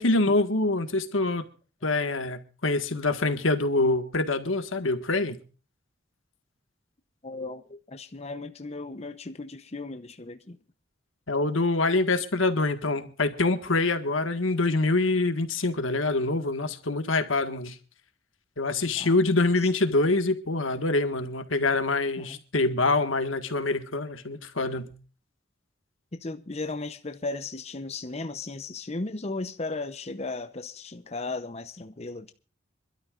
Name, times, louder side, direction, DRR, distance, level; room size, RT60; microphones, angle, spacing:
voice 1, 0.0-1.4 1.8-5.4 11.3-17.8 18.6-24.9, left 2 dB, 90° left, 1.7 m, -25 dB
voice 2, 7.2-10.6 12.8-12.9 19.0-19.1 22.2-22.4 26.2-32.3, left 3 dB, 35° left, 0.8 m, -36 dB
26.5 x 12.5 x 2.5 m
head